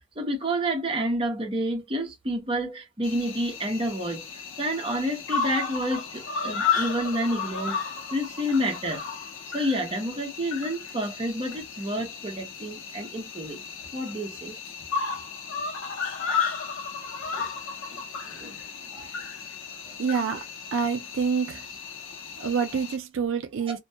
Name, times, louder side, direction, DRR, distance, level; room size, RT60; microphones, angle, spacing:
voice 1, 0.0-4.2 4.6-7.8 8.1-9.1 9.5-13.6 13.9-14.6 17.3-17.5 17.9-18.0 18.2-18.6 18.9-19.1 23.7-23.8, equal, 25° right, 0.7 m, -29 dB
Cricket, 3.0-23.0, left 6 dB, 80° left, 0.6 m, -34 dB
voice 2, 20.0-20.4 20.7-21.7 22.4-23.8, right 6 dB, 75° right, 0.4 m, -27 dB
2.2 x 2.2 x 2.7 m
head